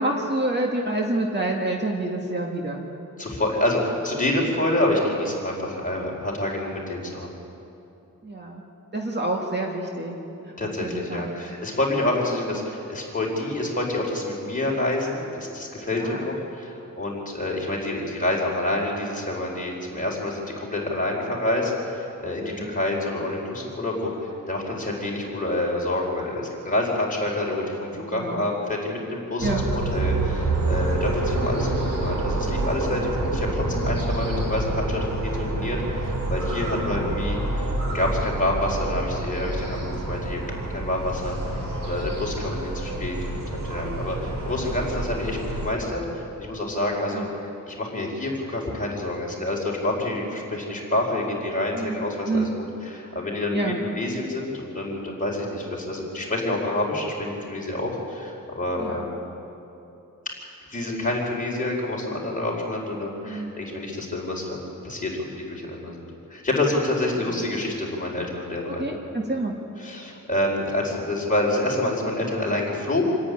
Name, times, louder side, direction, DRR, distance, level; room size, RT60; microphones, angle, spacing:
voice 1, 0.0-2.8 8.2-8.7 8.9-10.2 10.4-11.4 15.9-16.3 22.6-22.7 28.1-28.4 29.4-29.7 33.8-33.9 36.9-37.1 41.5-41.7 44.1-44.2 47.1-47.3 51.7-52.6 53.5-53.8 58.8-59.1 63.3-63.5 67.1-67.4 68.7-69.6, right 2 dB, 35° right, 0 dB, 1.9 m, -28 dB
voice 2, 3.2-7.3 10.6-40.4 40.7-43.4 43.7-52.5 52.8-59.2 60.7-69.0 69.8-73.0, left 1 dB, 25° left, -3 dB, 4.6 m, -28 dB
sound 1, 29.4-45.7, right 2 dB, 80° right, 3.7 m, -27 dB
27.0 x 10.0 x 9.9 m, 2.8 s
wide cardioid pair, 125°, 33 cm